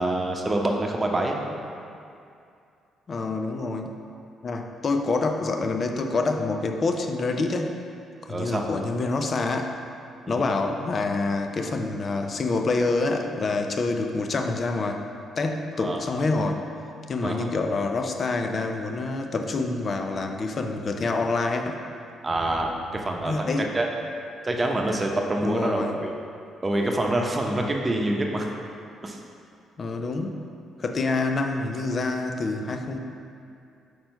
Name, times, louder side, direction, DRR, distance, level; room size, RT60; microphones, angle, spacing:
voice 1, 0.0-1.4 8.3-8.7 10.3-10.5 15.8-16.0 17.2-17.5 22.2-23.9 24.4-26.1 26.6-28.5 29.0-29.2, right 1 dB, 30° right, 1 dB, 0.9 m, -26 dB
voice 2, 3.1-3.9 4.4-7.8 8.2-9.8 10.3-15.0 15.4-16.6 17.1-21.8 23.3-23.7 25.4-26.0 29.8-30.4 30.8-33.0, left 3 dB, 50° left, 4 dB, 0.5 m, -27 dB
4.6 x 4.3 x 5.2 m, 2.5 s
hypercardioid pair, 55°, 0 cm